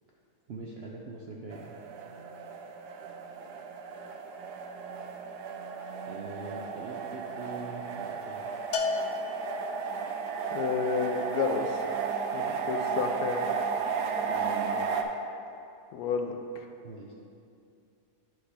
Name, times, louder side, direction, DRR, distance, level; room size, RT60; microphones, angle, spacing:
voice 1, 0.5-1.8 6.1-8.5 14.2-14.8 16.8-17.1, right 3 dB, 70° right, -2 dB, 0.6 m, -42 dB
sound 1, 1.5-15.0, right 5 dB, 85° right, 1.1 m, -34 dB
Bell, 8.7-10.1, left 4 dB, 65° left, 0.7 m, -33 dB
voice 2, 10.5-11.9 12.3-13.5 15.9-16.7, left 6 dB, 85° left, 5 dB, 1.2 m, -31 dB
9.2 x 3.3 x 5.7 m, 2.5 s
omnidirectional pair, 1.7 m